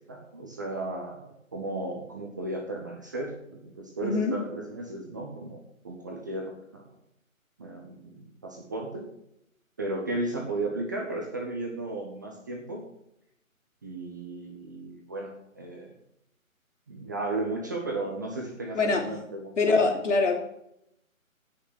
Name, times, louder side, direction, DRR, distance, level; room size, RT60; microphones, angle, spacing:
voice 1, 0.1-5.6 5.8-6.9 7.6-9.0 9.8-12.8 13.8-15.9 16.9-19.9, right 2 dB, 15° right, 0 dB, 0.7 m, -35 dB
voice 2, 4.0-4.4 18.7-19.0 19.6-20.4, left 3 dB, 60° left, 2 dB, 3.4 m, -23 dB
17.0 x 6.3 x 6.2 m, 0.78 s
figure-of-eight pair, 155°, 42 cm